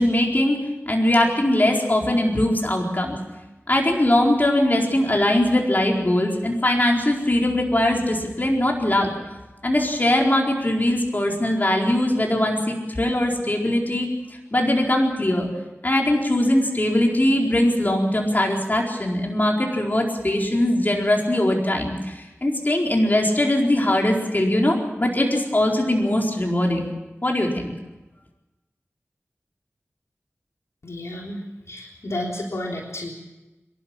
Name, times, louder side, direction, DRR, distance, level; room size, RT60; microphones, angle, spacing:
voice 1, 0.0-3.2 3.7-9.1 9.6-14.1 14.5-15.5 15.8-26.8 27.2-27.7, left 1 dB, 40° left, 0 dB, 4.4 m, -21 dB
voice 2, 30.8-31.4 31.7-33.1, left 1 dB, 75° left, -1 dB, 3.6 m, -31 dB
26.5 x 12.0 x 8.6 m, 1.1 s
wide cardioid pair, 50°, 5 cm